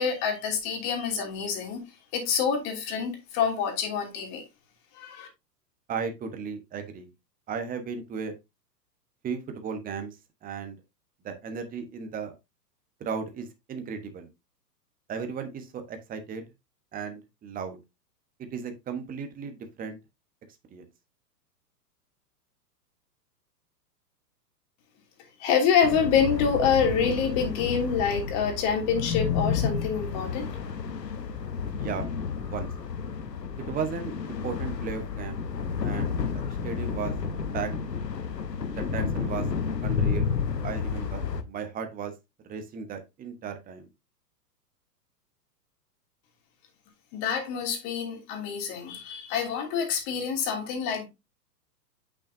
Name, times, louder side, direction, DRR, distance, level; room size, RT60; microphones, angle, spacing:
voice 1, 0.0-1.8 2.1-4.4 4.9-5.3 25.4-30.4 47.1-51.1, left 6 dB, 40° left, 2.8 m, -26 dB
voice 2, 5.9-7.1 7.5-8.3 9.2-10.2 10.4-10.8 11.2-12.3 13.0-14.3 15.1-16.4 16.9-17.8 18.5-20.0 20.7-20.8 31.7-32.1 32.4-32.7 33.7-35.5 35.8-37.1 37.5-37.8 38.7-39.5 39.8-40.3 40.6-42.1 42.4-43.9, right 6 dB, 15° right, 1.2 m, -35 dB
sound 1, 25.8-41.4, left 6 dB, 85° left, 1.0 m, -31 dB
8.4 x 6.3 x 2.7 m
figure-of-eight pair, 105°, 48 cm